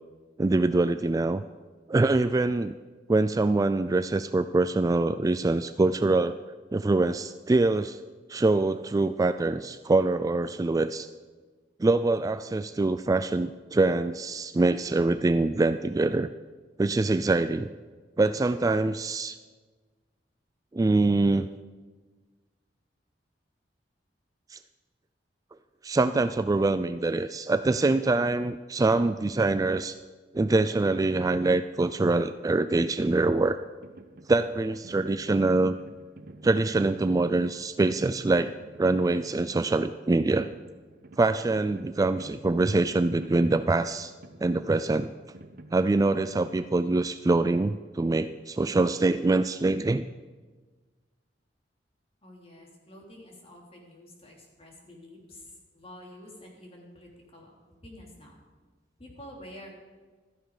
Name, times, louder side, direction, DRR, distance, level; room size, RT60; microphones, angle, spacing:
voice 1, 0.4-1.4 1.9-2.7 3.1-6.4 6.7-8.0 8.3-11.1 11.8-16.3 16.8-17.7 18.2-19.4 20.7-21.5 24.5-24.6 25.8-30.0 30.3-33.6 34.3-35.8 36.4-38.5 38.8-40.5 41.2-44.1 44.4-45.1 45.7-50.0, right 2 dB, 20° right, 12 dB, 0.3 m, -24 dB
sound 1, 32.6-48.3, right 2 dB, 55° right, 0.9 m, -50 dB
voice 2, 52.2-55.4 55.7-57.5 57.8-58.4 59.0-59.7, left 1 dB, 35° left, -1 dB, 3.4 m, -48 dB
16.0 x 13.0 x 4.9 m, 1.4 s
head